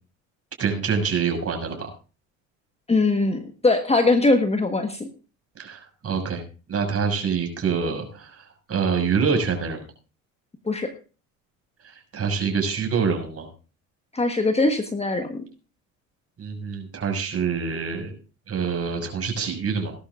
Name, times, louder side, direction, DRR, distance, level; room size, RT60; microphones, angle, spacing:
voice 1, 0.6-1.9 5.6-6.4 6.7-9.8 11.8-13.5 16.4-18.2 18.5-19.9, right 5 dB, 35° right, 4 dB, 6.4 m, -26 dB
voice 2, 2.9-5.1 10.7-10.9 14.1-15.4, left 2 dB, 15° left, 6 dB, 1.5 m, -21 dB
19.5 x 11.5 x 2.6 m, 0.35 s
hypercardioid pair, 75°, 40 cm